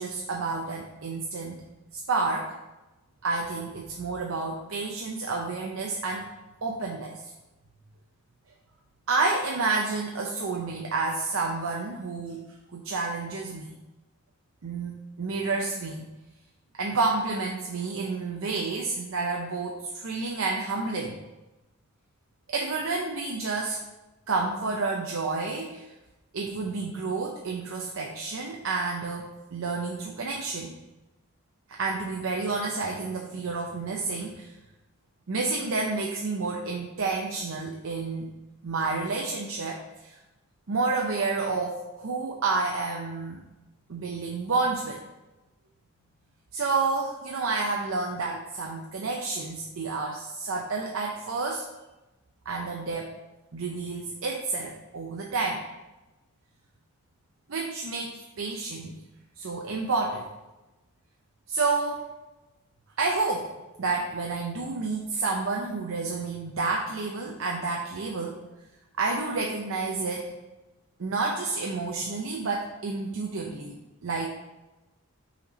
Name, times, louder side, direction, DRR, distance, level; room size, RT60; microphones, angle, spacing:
voice 1, 0.0-1.6 1.9-2.5 3.2-6.3 6.6-7.3 9.1-12.4 12.7-13.7 14.6-16.0 16.8-21.2 22.5-23.8 24.3-25.9 26.3-30.8 31.7-34.5 35.3-38.3 38.6-40.2 40.7-43.4 43.9-45.0 46.5-51.6 52.5-53.1 53.5-55.6 57.5-59.0 59.4-60.3 61.5-62.0 63.0-63.5 63.8-68.4 69.0-70.3 71.0-74.3, right 3 dB, 65° right, 0 dB, 0.6 m, -30 dB
5.7 x 4.2 x 4.1 m, 1.0 s
head